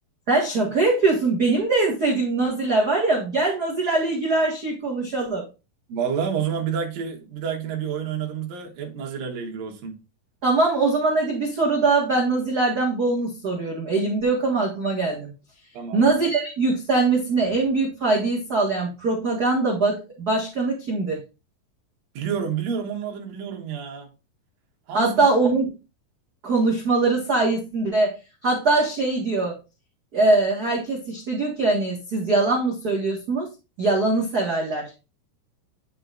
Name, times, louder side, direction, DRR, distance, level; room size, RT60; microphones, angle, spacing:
voice 1, 0.3-5.4 10.4-15.3 15.9-21.2 24.9-25.7 26.4-28.2 28.4-29.6 30.1-33.5 33.8-35.0, right 3 dB, 50° right, 1.1 m, -22 dB
voice 2, 5.9-9.9 15.7-16.1 22.1-24.1 24.9-25.2, right 7 dB, 70° right, 2.9 m, -29 dB
10.5 x 5.5 x 2.5 m
omnidirectional pair, 4.4 m